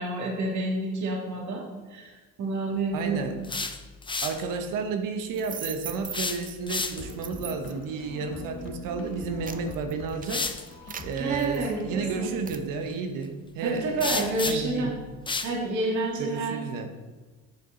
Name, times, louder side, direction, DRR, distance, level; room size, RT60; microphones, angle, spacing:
voice 1, 0.0-1.6 1.9-3.3 10.9-12.3 13.6-14.9 15.4-16.6, right 2 dB, 60° right, -2 dB, 2.3 m, -29 dB
voice 2, 2.9-3.4 4.2-10.4 11.0-14.9 16.2-16.9, right 5 dB, 80° right, 6 dB, 1.1 m, -32 dB
sound 1, 3.3-4.4 6.0-7.2 9.3-9.4 10.2-10.6 14.0-14.8 15.3-15.5, left 3 dB, 15° left, 0.6 m, -31 dB
sound 2, 5.3-6.5 7.1-7.8 8.5-8.7 9.1-12.0 12.5-12.7, right 7 dB, 25° right, 0.5 m, -40 dB
sound 3, 7.0-12.3, left 2 dB, 40° left, 1.5 m, -42 dB
9.9 x 6.8 x 3.9 m, 1.3 s
cardioid pair, 105°, 32 cm